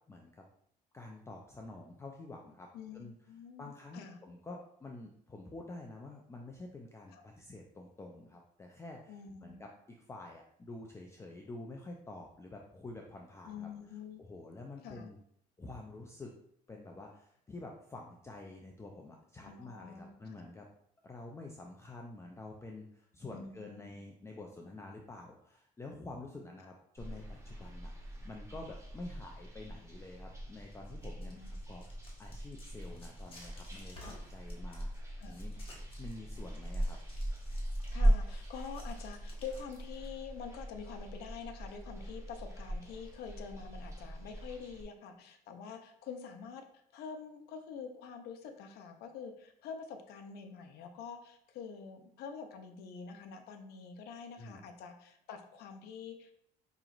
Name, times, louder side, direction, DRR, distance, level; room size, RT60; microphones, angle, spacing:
voice 1, 0.1-0.4 0.9-3.1 3.6-9.2 9.4-13.7 14.2-15.2 15.6-16.3 16.7-20.7 21.0-31.4 31.7-31.8 32.2-34.9 35.3-37.0 54.4-54.7, left 2 dB, 15° left, 1 dB, 0.4 m, -48 dB
voice 2, 2.7-4.2 7.1-7.3 9.1-9.6 13.4-14.2 14.8-15.1 19.4-20.5 23.3-24.0 31.2-31.5 34.0-34.2 35.2-35.4 37.9-56.3, left 6 dB, 75° left, 6 dB, 0.6 m, -46 dB
sound 1, 27.0-44.8, right 1 dB, 15° right, 0.9 m, -38 dB
sound 2, 30.7-40.1, left 1 dB, 35° left, 1.3 m, -57 dB
4.9 x 3.0 x 2.5 m, 0.69 s
cardioid pair, 100°, 17 cm